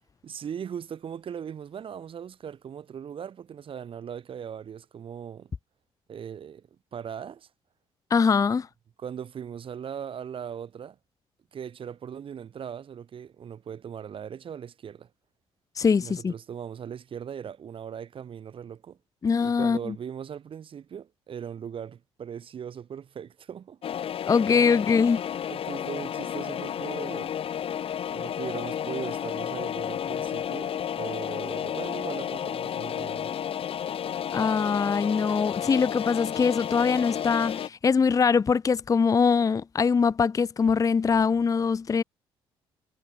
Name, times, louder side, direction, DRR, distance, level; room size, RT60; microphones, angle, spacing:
voice 1, 0.2-5.5 6.1-7.5 9.0-11.0 11.5-15.1 16.0-19.0 19.4-23.8 24.7-24.8 25.5-27.3 28.1-33.3, right 8 dB, 50° right, 0.9 m, -39 dB
voice 2, 8.1-8.7 15.8-16.3 19.2-20.0 24.3-25.2 34.3-42.0, left 5 dB, 30° left, 0.5 m, -23 dB
sound 1, 23.8-37.7, left 9 dB, 50° left, 0.9 m, -32 dB
hypercardioid pair, 50°, 12 cm